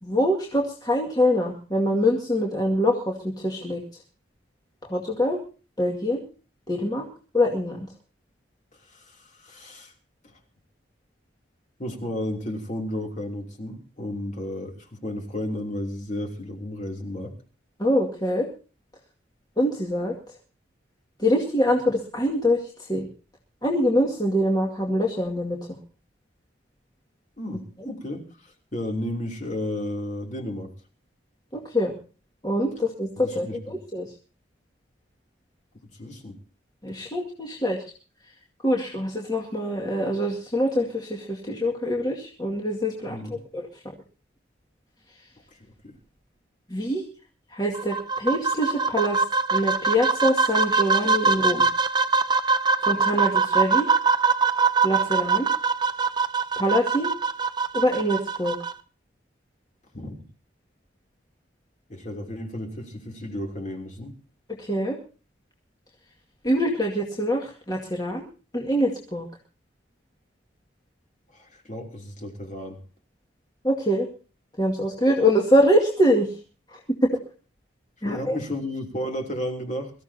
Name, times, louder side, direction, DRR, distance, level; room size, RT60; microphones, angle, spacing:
voice 1, 0.0-3.8 4.9-5.4 5.8-6.2 6.7-7.1 7.3-7.9 17.8-18.5 19.6-20.1 21.2-23.1 23.6-25.6 31.5-31.9 32.4-34.1 36.8-37.8 38.6-43.2 43.5-43.7 46.7-47.1 47.5-49.2 49.5-51.6 52.8-53.9 54.8-55.5 56.6-57.1 57.7-58.6 64.6-65.0 66.4-68.3 68.5-69.2 73.6-74.1 74.6-76.3 76.7-77.2 78.0-78.4, equal, 20° left, -2 dB, 2.1 m, -24 dB
voice 2, 8.9-9.9 11.8-17.4 27.4-30.7 33.2-33.8 36.0-36.3 43.0-43.4 45.8-45.9 59.9-60.2 61.9-64.2 71.3-72.8 78.0-79.9, left 1 dB, 40° left, 2 dB, 3.1 m, -33 dB
sound 1, 47.7-58.7, right 4 dB, 25° right, 0.7 m, -23 dB
23.5 x 14.5 x 2.8 m, 0.36 s
head